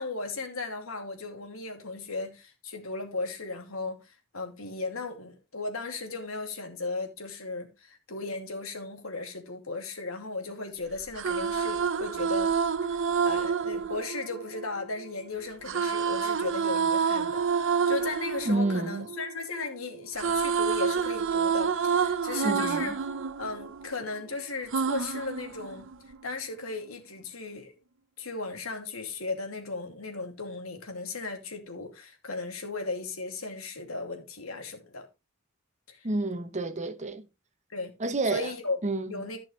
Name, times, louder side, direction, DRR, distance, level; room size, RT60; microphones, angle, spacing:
voice 1, 0.0-12.5 12.9-17.4 17.9-22.9 23.4-25.9 26.2-27.8 28.2-35.1 35.9-36.1 37.7-37.9 38.3-38.8 39.1-39.4, left 3 dB, 90° left, 2.6 m, -36 dB
sound 1, 11.0-15.1 15.6-19.7 20.0-24.2 24.7-26.2, right 6 dB, 65° right, 0.6 m, -28 dB
voice 2, 18.5-19.0 22.4-22.9 36.0-37.3 38.0-38.5 38.8-39.2, right 2 dB, 35° right, 1.0 m, -29 dB
14.5 x 6.2 x 3.2 m
head